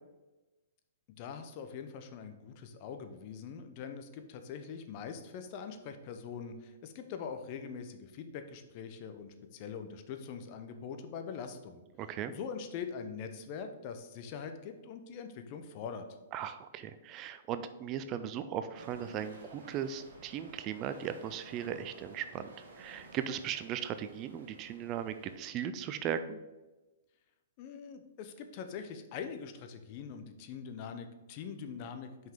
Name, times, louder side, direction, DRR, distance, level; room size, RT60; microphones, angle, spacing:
voice 1, 1.2-11.8 12.3-16.0 27.6-32.1, left 6 dB, 45° left, 7 dB, 0.7 m, -43 dB
voice 2, 12.0-12.3 16.3-26.4, right 9 dB, 35° right, 11 dB, 0.4 m, -38 dB
sound 1, 18.7-25.4, right 2 dB, 75° right, 1.6 m, -54 dB
5.6 x 5.3 x 3.7 m, 1.1 s
hypercardioid pair, 130°, 0 cm